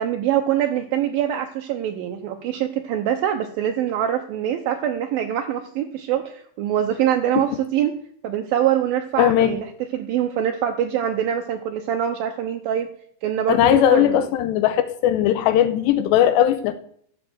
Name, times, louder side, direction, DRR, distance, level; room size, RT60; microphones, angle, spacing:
voice 1, 0.0-8.0 8.2-9.7 9.9-12.9 13.2-14.3, right 10 dB, 80° right, 2.2 m, -24 dB
voice 2, 9.2-9.6 13.5-16.7, left 11 dB, 80° left, 2.9 m, -18 dB
13.5 x 7.9 x 7.9 m
omnidirectional pair, 5.0 m